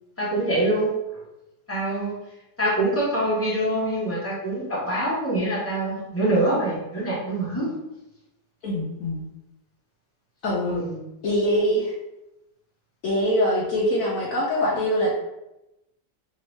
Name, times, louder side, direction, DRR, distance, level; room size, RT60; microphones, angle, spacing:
voice 1, 0.2-0.9 1.7-2.1 2.6-7.8 10.7-11.0, right 1 dB, 15° left, -7 dB, 0.5 m, -25 dB
voice 2, 8.6-9.2 10.4-10.8 11.2-11.9 13.0-15.1, equal, 70° left, -3 dB, 0.8 m, -23 dB
3.5 x 3.0 x 3.1 m, 0.92 s
omnidirectional pair, 2.1 m